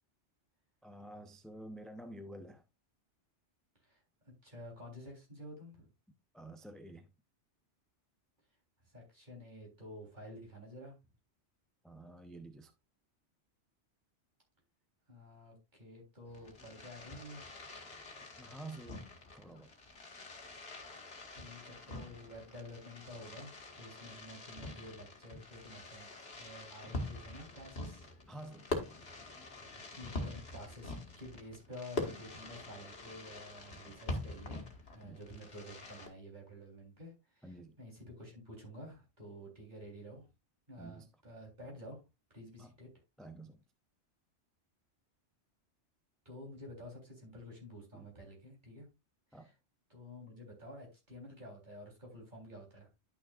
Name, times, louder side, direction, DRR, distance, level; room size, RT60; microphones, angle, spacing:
voice 1, 0.8-2.6 6.3-7.1 11.8-12.7 18.4-19.0 19.3-19.7 28.3-28.7 35.0-35.2 37.4-37.8 40.8-41.1 42.6-42.7 43.2-43.6 47.9-48.1 49.3-49.5, right 1 dB, ahead, 0.5 m, -49 dB
voice 2, 4.4-5.9 8.9-11.0 15.1-17.6 21.3-26.1 26.4-28.1 29.6-40.3 40.7-42.0 42.3-42.9 46.3-48.9 49.3-49.5 49.9-52.9, equal, 40° right, 3.8 m, -50 dB
Fireworks, 16.2-36.1, left 2 dB, 60° left, 1.9 m, -45 dB
11.0 x 6.2 x 2.4 m
omnidirectional pair, 1.2 m